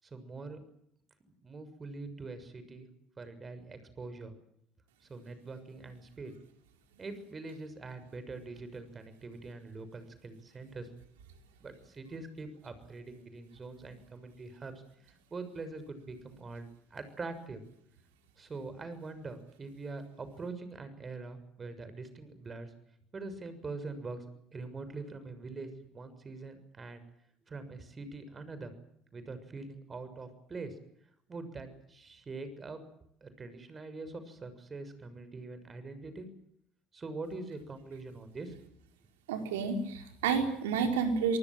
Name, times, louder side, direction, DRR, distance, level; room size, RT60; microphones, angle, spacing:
voice 1, 0.0-0.6 1.4-2.9 3.2-4.3 5.1-6.3 7.0-10.9 11.6-14.7 15.0-17.6 18.4-22.7 23.1-24.2 24.5-27.0 27.5-28.7 29.1-30.7 31.3-32.8 33.2-36.3 36.9-38.5, right 3 dB, 30° right, 11 dB, 6.6 m, -43 dB
voice 2, 39.3-41.4, right 5 dB, 80° right, 5 dB, 4.9 m, -30 dB
28.0 x 19.5 x 7.7 m, 0.73 s
hypercardioid pair, 65°, 0 cm